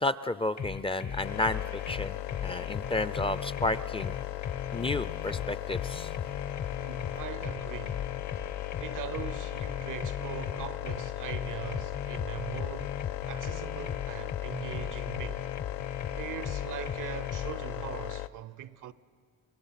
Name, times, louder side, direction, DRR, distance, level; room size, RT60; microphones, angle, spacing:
voice 1, 0.0-4.2 4.7-6.1, left 2 dB, 15° left, 0.4 m, -32 dB
sound 1, 0.6-17.5, left 7 dB, 50° left, 1.0 m, -38 dB
sound 2, 1.2-18.3, left 16 dB, 80° left, 0.5 m, -37 dB
voice 2, 6.8-8.1 8.8-15.4 16.1-18.9, right 11 dB, 65° right, 0.7 m, -41 dB
24.0 x 20.0 x 5.8 m
cardioid pair, 80°, 34 cm